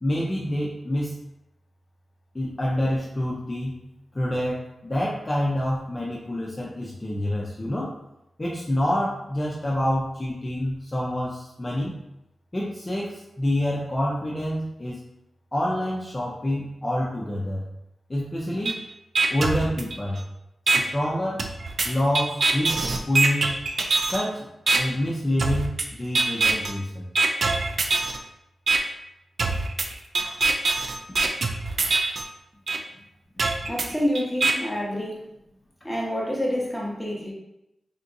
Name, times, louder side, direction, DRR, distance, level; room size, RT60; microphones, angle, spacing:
voice 1, 0.0-1.1 2.3-3.8 4.1-7.9 8.4-11.9 12.5-15.0 15.5-17.6 18.1-18.8 19.3-20.2 20.7-21.5 21.8-22.8 23.1-23.6 24.1-24.5 24.7-27.1 30.2-30.4, left 1 dB, 25° left, -5 dB, 0.6 m, -27 dB
sound 1, 18.7-18.8 19.2-20.2 20.7-20.8 21.4-24.2 24.7-24.8 25.4-25.9 26.2-26.7 27.2-28.2 28.7-28.8 29.4-32.2 32.7-32.8 33.4-34.5, right 3 dB, 65° right, 0.4 m, -23 dB
voice 2, 33.7-35.3 35.8-37.3, equal, 5° left, -4 dB, 1.0 m, -28 dB
3.5 x 2.7 x 2.6 m, 0.87 s
cardioid pair, 65°, 0 cm